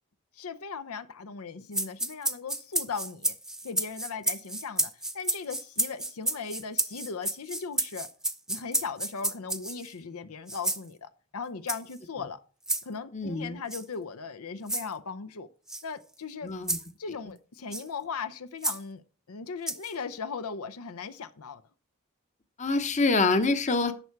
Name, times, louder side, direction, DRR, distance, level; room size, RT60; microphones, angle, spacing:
voice 1, 0.3-3.4 3.6-8.1 8.5-12.4 12.8-15.5 15.8-16.5 17.0-19.0 19.3-21.6, left 5 dB, 80° left, 0.7 m, -38 dB
sound 1, 1.7-9.9 10.5-10.8 11.7-12.0 12.7-12.8 13.7-13.8 14.7-14.9 15.7-15.8 16.7-16.9 17.7-17.9 18.6-18.8 19.7-19.9, right 1 dB, 5° right, 0.5 m, -30 dB
voice 2, 13.1-13.6 16.4-16.8 22.6-23.9, left 3 dB, 30° left, 0.8 m, -26 dB
11.0 x 7.0 x 4.6 m
head